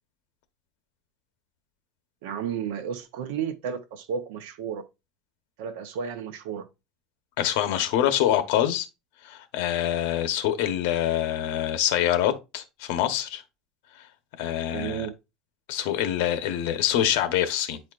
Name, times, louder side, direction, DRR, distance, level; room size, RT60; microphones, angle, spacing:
voice 1, 2.2-4.8 5.6-6.7 14.7-15.1, right 7 dB, 90° right, 0.9 m, -32 dB
voice 2, 7.4-8.9 9.2-13.4 14.0-14.1 14.4-15.1 15.7-17.8, left 11 dB, 75° left, 1.1 m, -25 dB
9.2 x 4.3 x 2.5 m
cardioid pair, 165°, 0 cm